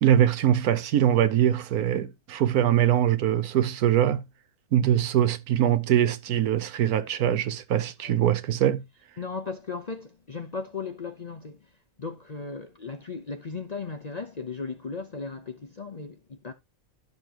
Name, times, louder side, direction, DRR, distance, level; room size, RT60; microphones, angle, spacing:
voice 1, 0.0-4.2 4.7-8.8, right 10 dB, 80° right, 1.3 m, -22 dB
voice 2, 9.2-11.7 12.0-16.5, left 4 dB, 40° left, 0.6 m, -36 dB
12.0 x 6.8 x 2.9 m
omnidirectional pair, 1.5 m